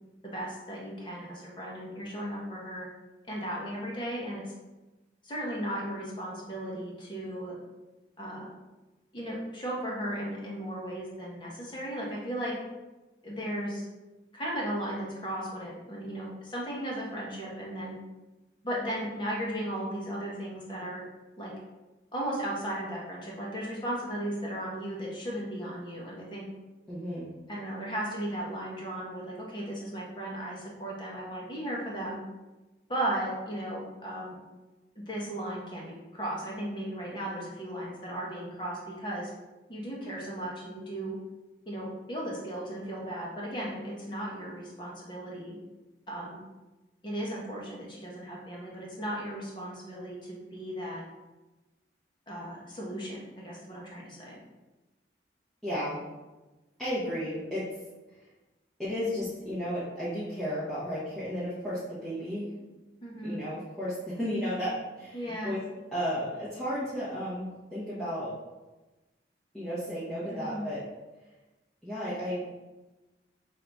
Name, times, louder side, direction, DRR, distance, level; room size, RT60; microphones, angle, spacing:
voice 1, 0.2-2.9 3.3-4.5 5.2-7.6 8.2-8.5 9.1-12.5 13.2-13.8 14.3-18.0 18.6-21.0 21.4-21.5 22.1-26.5 27.5-32.2 32.9-34.4 34.9-39.3 39.7-41.1 41.7-45.6 46.1-46.4 47.0-51.0 52.3-54.4 63.0-63.4 65.1-65.6 70.3-70.7, right 1 dB, 25° left, -4 dB, 1.0 m, -36 dB
voice 2, 26.9-27.3 55.6-56.0 56.8-57.7 58.8-62.5 63.2-65.6 65.9-68.3 69.5-70.8 71.8-72.6, equal, ahead, -12 dB, 1.0 m, -33 dB
5.6 x 2.7 x 3.5 m, 1.1 s
head